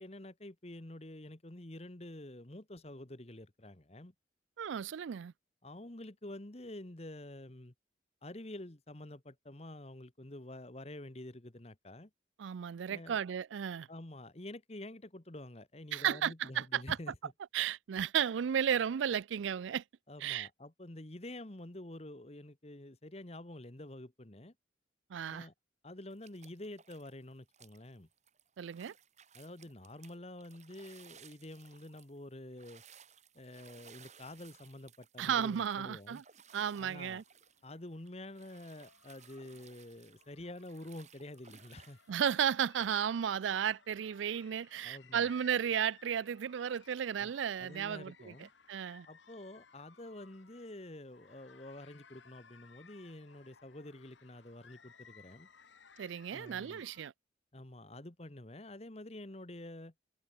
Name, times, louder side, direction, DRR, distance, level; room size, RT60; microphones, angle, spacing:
voice 1, 0.0-4.1 5.6-7.7 8.2-12.1 12.9-13.2 13.9-17.3 20.1-24.5 25.3-25.5 25.8-28.1 29.3-32.8 33.3-36.2 36.8-37.2 37.6-42.0 44.8-45.3 47.2-47.3 47.6-48.5 49.1-55.5 56.3-56.8 57.5-59.9, left 1 dB, 35° left, 1.3 m, -48 dB
voice 2, 4.6-5.3 12.4-13.9 15.9-17.0 17.5-19.8 20.2-20.5 25.1-25.5 28.6-28.9 35.2-36.2 36.5-37.2 42.1-48.3 48.7-49.1 56.0-57.1, right 8 dB, 80° right, 0.4 m, -34 dB
sound 1, 26.1-27.2 27.5-42.1, right 7 dB, 35° right, 3.6 m, -60 dB
sound 2, 37.2-57.1, left 6 dB, 75° left, 1.7 m, -62 dB
head